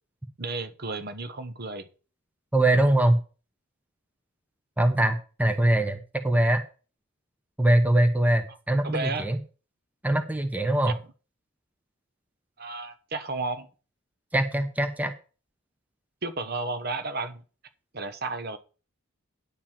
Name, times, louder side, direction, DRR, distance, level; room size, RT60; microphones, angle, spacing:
voice 1, 0.4-1.9 8.8-9.3 10.9-11.0 12.6-13.7 16.2-17.4 17.9-18.6, right 3 dB, 50° right, 10 dB, 1.0 m, -32 dB
voice 2, 2.5-3.2 4.8-6.6 7.6-9.4 10.0-10.9 14.3-15.1, right 1 dB, 5° right, 7 dB, 0.9 m, -22 dB
10.5 x 4.7 x 7.3 m, 0.35 s
head